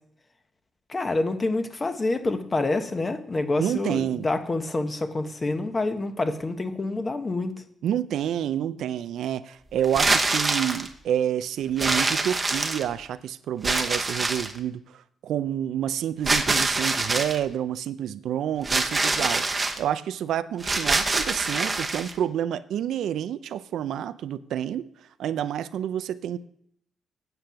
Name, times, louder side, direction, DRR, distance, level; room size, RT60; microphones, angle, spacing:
voice 1, 0.9-7.5, left 2 dB, 25° left, 8 dB, 1.0 m, -27 dB
voice 2, 3.6-4.3 7.8-24.9 25.2-26.4, right 10 dB, 80° right, 14 dB, 0.4 m, -29 dB
sound 1, 9.8-10.9 11.8-13.1 13.6-14.6 16.3-17.4 18.6-19.8 20.6-22.1, right 3 dB, 20° right, 1.0 m, -25 dB
8.8 x 7.9 x 5.8 m, 0.69 s
cardioid pair, 115°, 0 cm